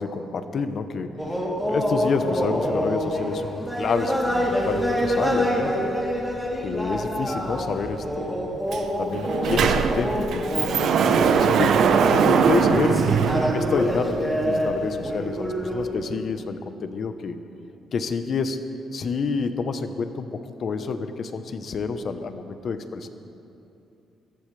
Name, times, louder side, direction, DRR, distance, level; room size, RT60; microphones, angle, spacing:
voice 1, 0.0-5.9 6.6-8.3 9.0-11.8 12.1-17.4 17.9-18.6 18.9-23.1, left 5 dB, 55° left, 9 dB, 1.0 m, -28 dB
sound 1, 1.2-15.8, equal, ahead, 3.2 m, -26 dB
Sliding door, 8.7-8.8 9.1-14.1, right 6 dB, 70° right, 0.8 m, -21 dB
22.0 x 14.5 x 3.4 m, 2.7 s
cardioid pair, 90°, 0 cm